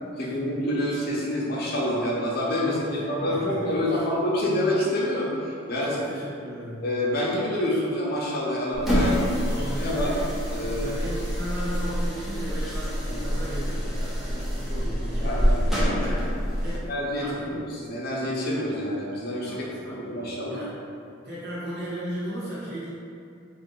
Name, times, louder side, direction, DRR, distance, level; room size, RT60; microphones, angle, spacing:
voice 1, 0.2-5.9 6.8-9.2 9.6-10.1 10.5-11.1 13.1-13.2 15.2-15.5 16.0-16.1 16.9-20.6, left 1 dB, 50° left, -5 dB, 0.6 m, -27 dB
voice 2, 2.6-4.1 5.8-6.8 8.9-10.2 10.8-16.3 16.6-16.9 17.1-17.5 19.5-20.2 20.5-20.7 21.2-22.9, equal, 55° right, -11 dB, 0.9 m, -36 dB
sound 1, 8.7-16.8, equal, ahead, 0.5 m, -26 dB
2.6 x 2.5 x 3.7 m, 2.4 s
head